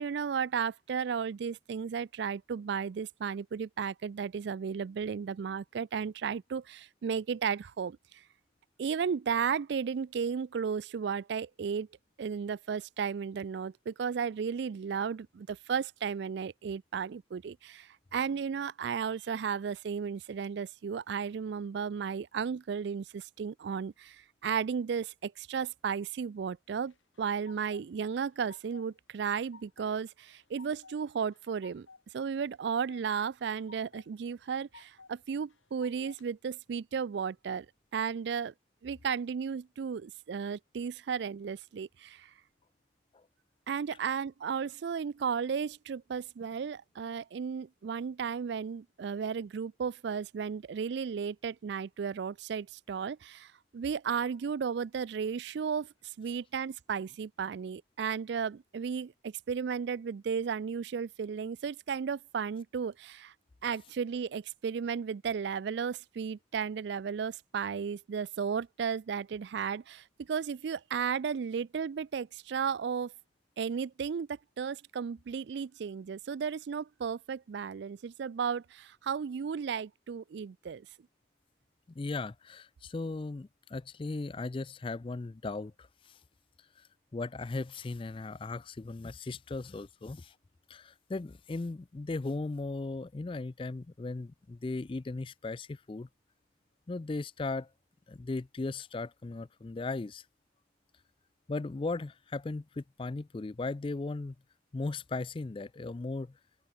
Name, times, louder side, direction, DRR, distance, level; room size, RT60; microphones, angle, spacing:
voice 1, 0.0-8.0 8.8-11.9 12.2-31.9 32.1-37.7 37.9-38.5 38.8-42.3 43.7-63.3 63.6-73.1 73.6-80.9, right 6 dB, 60° right, 0.3 m, -34 dB
sound 1, 26.8-27.8 28.2-28.9 29.2-29.9 30.3-31.0 31.3-32.0 32.4-33.0 33.4-34.1 34.4-35.1 35.5-36.3, left 4 dB, 90° left, 2.6 m, -55 dB
sound 2, 32.6-37.9, equal, 40° right, 7.2 m, -82 dB
voice 2, 82.0-86.2 86.8-86.9 87.1-90.3 90.7-96.1 96.9-97.7 98.1-100.2 101.5-104.3 104.7-106.3, left 3 dB, 25° left, 0.4 m, -37 dB
open air
head